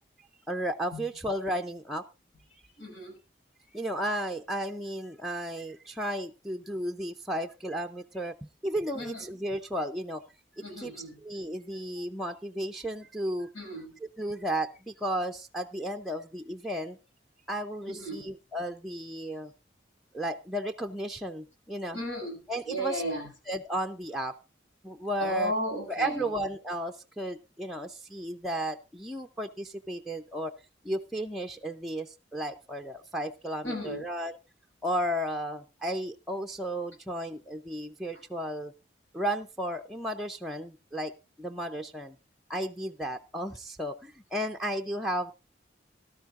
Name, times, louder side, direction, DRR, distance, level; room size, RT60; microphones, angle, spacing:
voice 1, 0.5-2.0 3.7-10.2 10.6-13.5 14.0-17.0 17.5-19.5 20.1-22.0 22.5-23.0 23.5-24.4 24.8-25.5 25.9-30.5 30.8-34.4 34.8-38.7 39.1-42.2 42.5-45.3, right 1 dB, ahead, 2 dB, 0.5 m, -34 dB
voice 2, 2.8-3.1 8.9-9.2 10.6-11.1 13.5-13.9 17.9-18.2 21.9-22.3 22.7-23.3 25.2-26.2 33.6-34.0, equal, 90° left, 2 dB, 6.7 m, -34 dB
17.5 x 12.5 x 2.5 m, 0.28 s
head